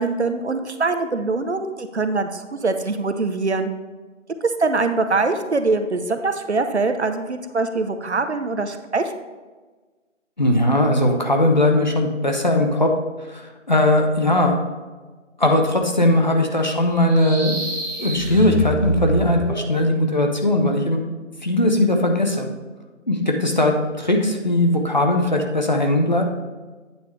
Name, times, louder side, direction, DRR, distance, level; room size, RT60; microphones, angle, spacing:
voice 1, 0.0-3.7 4.4-9.2, right 3 dB, 60° right, 8 dB, 0.8 m, -23 dB
voice 2, 10.4-12.9 13.3-14.6 15.4-17.6 18.0-21.0 21.4-22.5 23.1-26.2, left 1 dB, 35° left, 3 dB, 0.8 m, -19 dB
sound 1, 16.9-19.7, right 1 dB, 15° left, 1.1 m, -27 dB
8.9 x 6.6 x 3.3 m, 1.3 s
figure-of-eight pair, 170°, 38 cm